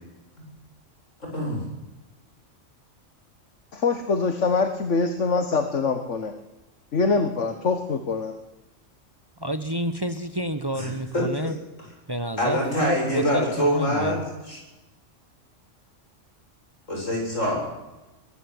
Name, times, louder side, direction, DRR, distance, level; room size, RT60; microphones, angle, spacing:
voice 1, 1.2-1.6 10.8-11.5 12.4-14.6 16.9-17.6, equal, 85° left, -1 dB, 8.6 m, -25 dB
voice 2, 3.7-6.3 6.9-8.3, left 4 dB, 70° left, 7 dB, 1.8 m, -24 dB
voice 3, 9.4-11.6 12.1-14.2, right 1 dB, 20° right, 11 dB, 1.1 m, -30 dB
22.5 x 13.0 x 9.4 m, 1.0 s
omnidirectional pair, 1.3 m